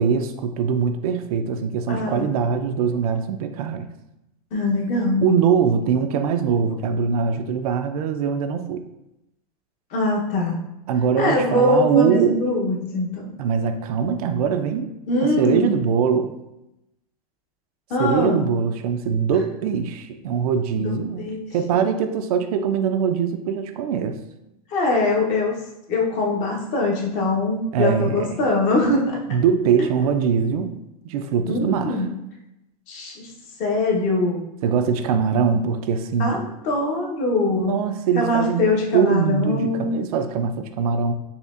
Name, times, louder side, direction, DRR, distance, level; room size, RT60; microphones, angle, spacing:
voice 1, 0.0-3.9 5.2-8.8 10.9-12.4 13.4-14.9 15.2-16.3 18.0-24.2 27.7-28.4 29.3-30.8 31.0-32.0 34.6-36.4 37.5-41.1, right 6 dB, 65° right, 8 dB, 0.4 m, -22 dB
voice 2, 1.9-2.3 4.5-5.3 9.9-10.6 11.2-13.3 15.1-15.7 17.9-18.5 20.8-21.4 21.7-21.9 24.7-25.6 25.9-29.2 31.5-32.1 32.9-33.3 33.6-34.4 36.2-37.8 38.1-40.0, left 2 dB, 40° left, -1 dB, 0.8 m, -22 dB
4.2 x 2.8 x 2.4 m, 0.89 s
supercardioid pair, 135°, 20 cm